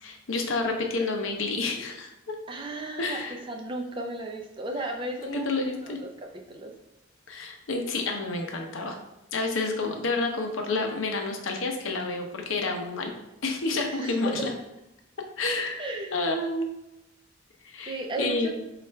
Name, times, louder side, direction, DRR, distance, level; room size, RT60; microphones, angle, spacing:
voice 1, 0.0-2.3 3.0-3.3 5.2-6.0 7.3-9.0 9.3-13.1 13.4-14.5 15.4-16.7 17.6-18.5, left 3 dB, 85° left, 3 dB, 0.6 m, -29 dB
voice 2, 2.5-5.4 5.8-6.1 6.3-6.7 13.9-14.3 15.8-16.2 17.9-18.5, right 2 dB, 25° right, 2 dB, 0.4 m, -35 dB
3.2 x 2.4 x 4.4 m, 0.91 s
head